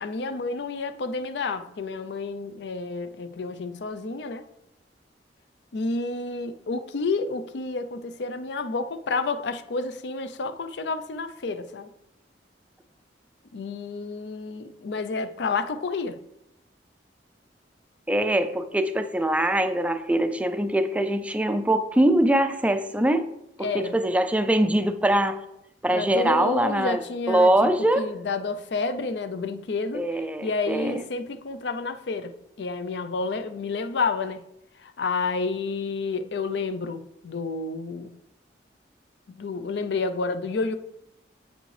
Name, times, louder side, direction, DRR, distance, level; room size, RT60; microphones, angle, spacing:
voice 1, 0.0-4.4 5.7-11.9 13.5-16.2 23.6-24.0 25.9-34.4 34.8-38.1 39.4-40.7, left 3 dB, 65° left, 10 dB, 0.5 m, -30 dB
voice 2, 18.1-23.3 23.6-25.4 25.8-27.0 27.3-28.1 29.9-31.0, right 1 dB, 5° right, 9 dB, 0.3 m, -23 dB
7.5 x 5.1 x 3.2 m, 0.82 s
head